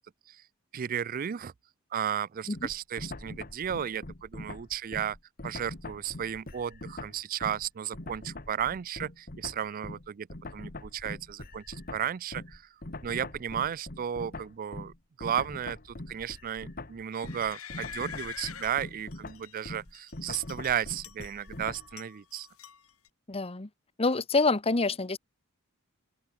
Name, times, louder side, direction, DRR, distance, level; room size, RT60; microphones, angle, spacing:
voice 1, 0.7-1.5 1.9-5.2 5.4-10.3 10.5-12.7 13.0-14.9 15.2-22.5, right 9 dB, 40° right, 0.4 m, -34 dB
sound 1, 2.5-7.7 7.9-21.9, left 2 dB, 40° left, 2.1 m, -43 dB
sound 2, 17.1-19.5 19.9-21.5 21.7-23.1, left 8 dB, 80° left, 6.7 m, -45 dB
voice 2, 23.3-23.7 24.0-25.2, left 3 dB, 25° left, 1.0 m, -26 dB
open air
head